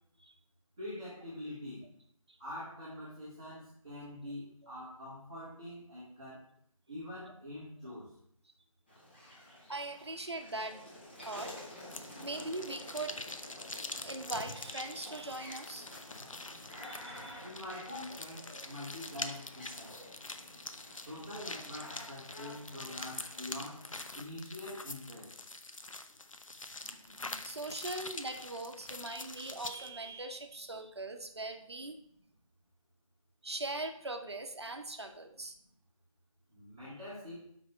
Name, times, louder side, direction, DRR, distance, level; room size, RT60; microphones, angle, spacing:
voice 1, 0.8-1.8 2.4-6.4 6.9-8.1 17.4-19.9 21.1-23.8 24.1-25.3 36.5-37.4, left 1 dB, 10° right, -13 dB, 1.0 m, -45 dB
sound 1, 8.9-24.1, left 1 dB, 20° left, 1.1 m, -50 dB
voice 2, 9.7-10.8 11.2-11.5 11.9-13.2 14.0-15.9 16.3-16.4 16.8-17.4 26.8-31.9 33.4-35.5, right 2 dB, 50° right, 5 dB, 0.8 m, -41 dB
sound 2, 11.9-29.9, left 3 dB, 70° left, 0.6 m, -45 dB
6.4 x 4.9 x 4.3 m, 0.66 s
figure-of-eight pair, 165°, 18 cm